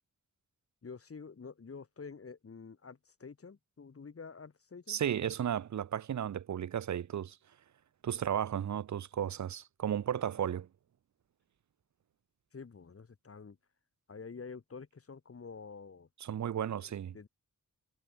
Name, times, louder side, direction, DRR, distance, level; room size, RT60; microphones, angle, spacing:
voice 1, 0.8-5.0 12.5-13.6 14.1-16.1 16.7-17.3, left 5 dB, 45° left, 4.9 m, -48 dB
voice 2, 4.9-7.4 8.0-10.7 16.2-17.3, right 9 dB, 65° right, 0.7 m, -34 dB
wide cardioid pair, 110°, 31 cm